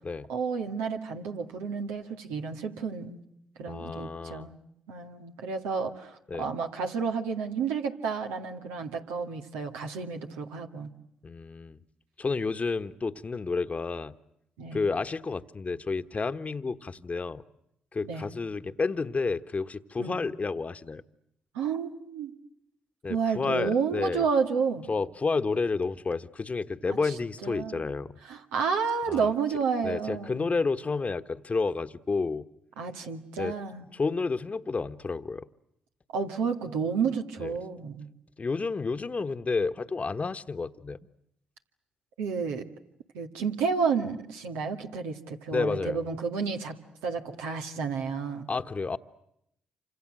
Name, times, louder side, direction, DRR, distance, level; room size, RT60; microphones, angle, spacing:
voice 1, 0.3-3.2 3.6-4.6 4.9-10.9 14.6-14.8 18.0-18.3 20.0-20.2 21.5-22.3 23.1-24.9 27.0-27.1 27.4-27.8 28.2-30.5 32.8-33.9 36.1-38.1 42.2-42.7 43.1-46.7 47.0-48.5, right 5 dB, 85° right, 3 dB, 2.1 m, -31 dB
voice 2, 3.7-4.5 6.3-6.5 11.2-11.8 12.2-14.1 14.7-17.4 17.9-21.0 23.0-24.3 24.9-28.1 29.1-29.3 29.8-32.5 33.4-33.6 33.9-35.5 37.4-37.5 38.4-41.0 45.5-46.0 48.5-49.0, left 4 dB, 40° left, 10 dB, 1.4 m, -30 dB
28.0 x 26.0 x 7.8 m, 0.77 s
hypercardioid pair, 45°, 4 cm